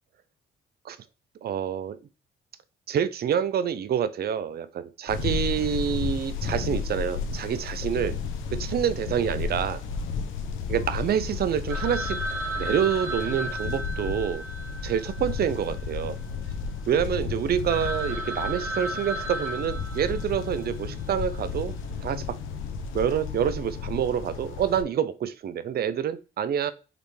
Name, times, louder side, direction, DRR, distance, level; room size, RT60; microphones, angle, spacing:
voice 1, 1.4-2.0 2.9-8.2 8.5-9.8 10.7-12.2 12.6-14.4 14.8-16.2 16.9-21.7 22.0-22.4 22.9-26.7, right 8 dB, 50° right, 13 dB, 0.6 m, -27 dB
sound 1, 5.1-24.8, left 5 dB, 85° left, 0.8 m, -33 dB
Telephone, 11.7-16.0 16.3-16.4 16.9-17.0 17.4-17.5 17.7-20.6, right 1 dB, 85° right, 2.0 m, -34 dB
5.0 x 3.3 x 3.2 m, 0.32 s
cardioid pair, 90°, 20 cm